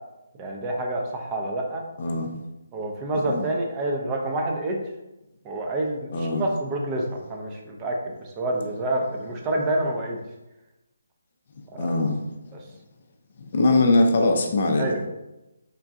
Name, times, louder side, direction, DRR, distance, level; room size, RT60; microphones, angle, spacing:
voice 1, 0.4-1.8 2.7-4.8 5.4-10.2 11.7-11.9 14.7-15.1, right 1 dB, 20° right, 0 dB, 0.4 m, -28 dB
voice 2, 2.0-2.4 3.3-3.5 6.1-6.4 11.8-12.2 13.5-14.9, left 2 dB, 50° left, 3 dB, 0.4 m, -21 dB
3.7 x 2.2 x 2.5 m, 0.96 s
figure-of-eight pair, 150°, 0 cm